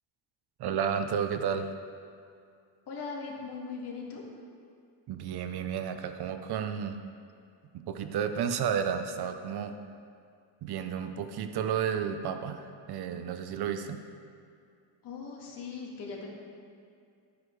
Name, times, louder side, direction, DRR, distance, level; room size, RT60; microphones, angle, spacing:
voice 1, 0.6-1.7 5.1-7.0 7.7-9.8 10.6-14.0, right 7 dB, 55° right, 8 dB, 0.8 m, -32 dB
voice 2, 2.9-4.2 15.0-16.3, left 5 dB, 55° left, -2 dB, 2.1 m, -39 dB
12.0 x 9.5 x 3.2 m, 2.4 s
cardioid pair, 140°, 47 cm